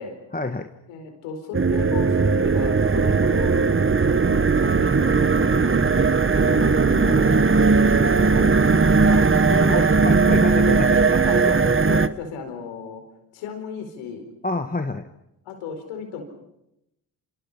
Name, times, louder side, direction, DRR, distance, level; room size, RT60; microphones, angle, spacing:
voice 1, 0.3-0.7 6.4-7.5 7.9-8.6 9.1-9.3 9.6-11.5 14.4-15.1, left 3 dB, 20° left, 6 dB, 1.7 m, -29 dB
voice 2, 0.9-3.6 4.0-6.0 9.2-9.8 11.2-13.0 13.3-14.3 15.5-16.2, left 6 dB, 90° left, 6 dB, 4.6 m, -34 dB
sound 1, 1.5-12.1, right 4 dB, 25° right, 1.3 m, -18 dB
27.5 x 26.0 x 5.7 m, 0.85 s
hypercardioid pair, 45°, 49 cm